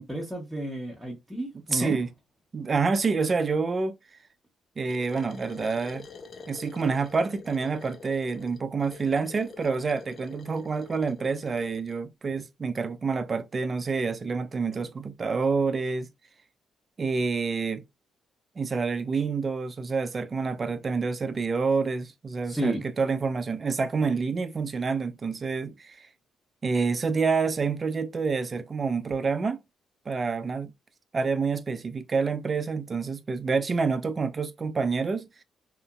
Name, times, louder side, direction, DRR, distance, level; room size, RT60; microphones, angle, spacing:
voice 1, 0.0-2.0 22.5-22.8, right 1 dB, ahead, 0.9 m, -32 dB
voice 2, 1.7-2.1 2.5-3.9 4.8-6.1 6.5-16.1 17.0-17.8 18.6-26.1 26.6-29.6 30.1-30.7 31.1-35.3, right 4 dB, 35° right, 0.4 m, -28 dB
sound 1, 4.9-12.0, left 5 dB, 50° left, 0.4 m, -47 dB
2.8 x 2.5 x 2.3 m
cardioid pair, 90°, 0 cm